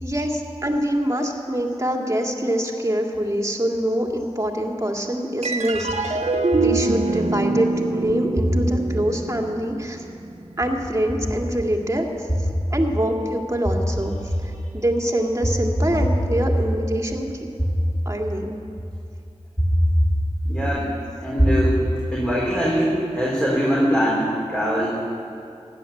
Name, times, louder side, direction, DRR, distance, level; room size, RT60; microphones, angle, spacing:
voice 1, 0.0-6.2 6.6-10.0 10.6-12.1 12.7-14.2 14.4-17.3 18.1-18.5, equal, 25° right, 0 dB, 2.2 m, -24 dB
sound 1, 5.4-12.1, right 3 dB, 65° right, 1.3 m, -26 dB
voice 2, 19.6-20.1 20.4-20.9 21.2-21.8 22.1-24.9, equal, 10° left, -6 dB, 3.4 m, -20 dB
14.5 x 10.5 x 8.6 m, 2.5 s
wide cardioid pair, 40°, 12 cm